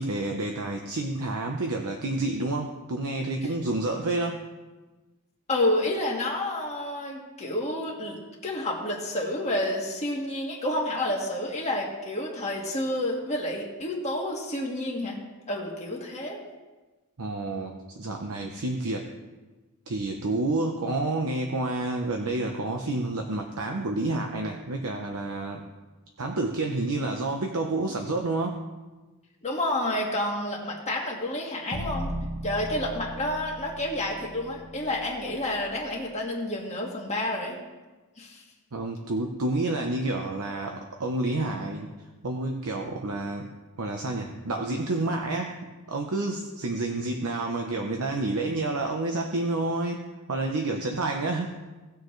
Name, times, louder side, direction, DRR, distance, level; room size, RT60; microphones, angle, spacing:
voice 1, 0.0-4.4 17.2-19.1 19.9-25.6 26.2-28.6 38.7-41.9 42.2-43.5 43.8-45.6 45.9-51.5, right 2 dB, 75° right, 2 dB, 0.9 m, -29 dB
voice 2, 5.5-15.2 15.5-16.4 29.4-32.1 32.4-37.6 38.2-38.4, left 1 dB, 30° left, -3 dB, 1.7 m, -29 dB
sound 1, 31.7-35.9, equal, 30° right, 1.2 m, -37 dB
18.0 x 6.6 x 3.2 m, 1.2 s
head